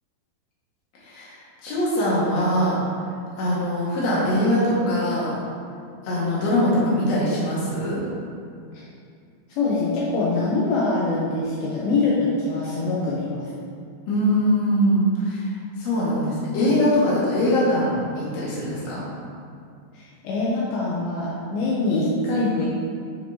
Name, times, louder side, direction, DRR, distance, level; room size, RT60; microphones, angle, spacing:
voice 1, 1.0-1.4 1.6-2.8 3.4-5.3 6.0-8.0 14.1-15.5 15.8-19.0, equal, 50° left, -8 dB, 2.8 m, -22 dB
voice 2, 9.5-13.5 19.9-22.7, left 3 dB, 75° left, -6 dB, 2.6 m, -24 dB
10.5 x 5.8 x 2.9 m, 2.3 s
omnidirectional pair, 4.5 m